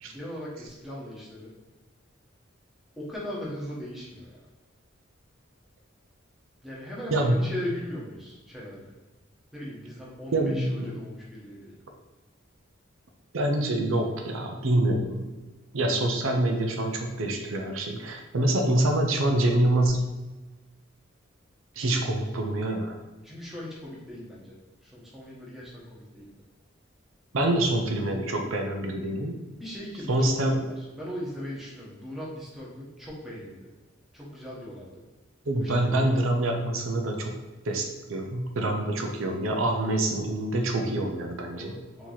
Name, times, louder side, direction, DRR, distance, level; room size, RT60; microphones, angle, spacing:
voice 1, 0.0-1.5 3.0-4.4 6.6-8.9 9.5-11.7 23.2-24.6 24.8-26.3 29.6-33.7 34.1-35.0 35.5-36.2 41.5-42.1, equal, ahead, -6 dB, 1.1 m, -39 dB
voice 2, 10.3-10.9 13.3-15.3 15.7-20.1 21.8-23.0 27.3-29.4 30.1-30.6 35.5-37.3 37.6-41.7, right 1 dB, 80° right, 3 dB, 0.6 m, -26 dB
4.5 x 2.9 x 4.0 m, 1.2 s
head